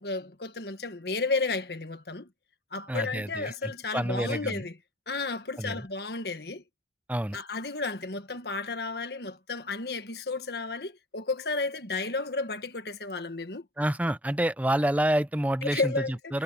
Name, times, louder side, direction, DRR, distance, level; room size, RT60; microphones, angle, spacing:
voice 1, 0.0-2.3 2.7-4.8 5.1-6.6 7.3-13.6 15.7-16.3, left 3 dB, 60° left, 1.6 m, -32 dB
voice 2, 2.9-4.6 5.6-5.8 7.1-7.4 13.8-15.9 16.3-16.4, right 1 dB, 10° right, 0.6 m, -28 dB
head